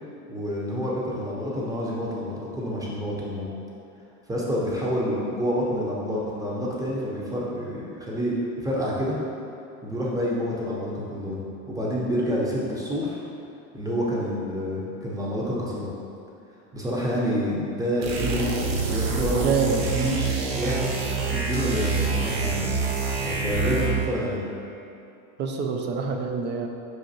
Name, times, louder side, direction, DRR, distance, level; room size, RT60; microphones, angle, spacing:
voice 1, 0.3-3.4 4.3-8.4 8.6-9.2 9.8-11.4 11.7-13.2 13.7-15.9 16.7-18.5 18.8-20.9 21.3-22.7 23.2-24.4, equal, 10° right, -5 dB, 0.8 m, -28 dB
sound 1, 18.0-24.2, right 4 dB, 55° right, 0.7 m, -26 dB
voice 2, 19.1-19.8 25.4-26.7, right 5 dB, 30° right, 3 dB, 0.3 m, -26 dB
6.2 x 2.5 x 2.8 m, 2.7 s
hypercardioid pair, 95°, 43 cm